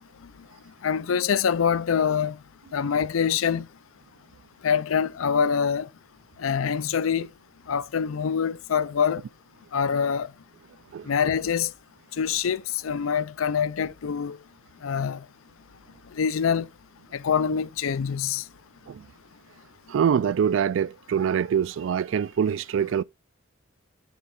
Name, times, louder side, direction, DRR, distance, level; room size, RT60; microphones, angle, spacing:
voice 1, 0.8-2.3 2.7-3.6 4.6-5.9 6.4-7.3 7.7-9.2 9.7-10.3 11.1-11.7 12.2-14.4 14.8-15.2 16.2-16.7 17.1-18.4, left 7 dB, 85° left, 0.5 m, -25 dB
voice 2, 19.9-23.0, right 7 dB, 70° right, 0.3 m, -24 dB
9.3 x 4.1 x 3.7 m
head